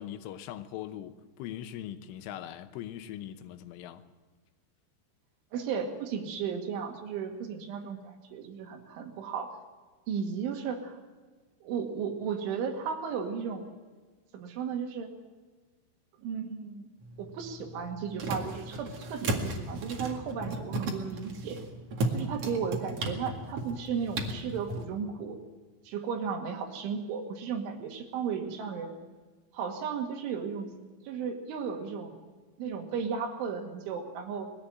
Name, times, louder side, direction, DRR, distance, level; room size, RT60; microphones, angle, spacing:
voice 1, 0.0-4.0, left 11 dB, 80° left, 3.5 m, -41 dB
voice 2, 5.5-9.5 10.1-11.0 11.6-13.7 14.3-15.1 16.2-16.9 17.2-21.6 22.1-25.4 25.9-29.0 29.5-30.7 31.1-32.2 32.6-34.5, right 6 dB, 75° right, 4.3 m, -35 dB
sound 1, 17.0-24.9, right 2 dB, 50° right, 2.0 m, -35 dB
21.0 x 14.5 x 9.2 m
omnidirectional pair, 5.6 m